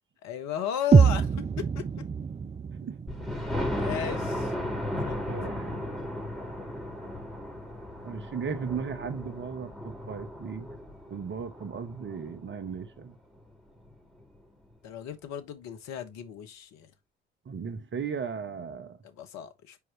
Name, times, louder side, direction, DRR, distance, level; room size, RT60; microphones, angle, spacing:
voice 1, 0.2-1.9 3.7-4.5 5.0-5.2 14.8-16.9 19.0-19.8, left 10 dB, 60° left, 1.2 m, -35 dB
sound 1, 0.9-4.9, right 6 dB, 20° right, 0.6 m, -25 dB
Thunder, 3.1-12.8 13.4-13.5 13.9-14.0 14.2-14.3, left 1 dB, ahead, 3.7 m, -35 dB
voice 2, 5.3-5.9 8.0-10.7 11.1-13.1 17.5-19.0, right 6 dB, 40° right, 1.5 m, -36 dB
7.0 x 4.7 x 3.0 m
hypercardioid pair, 55°, 31 cm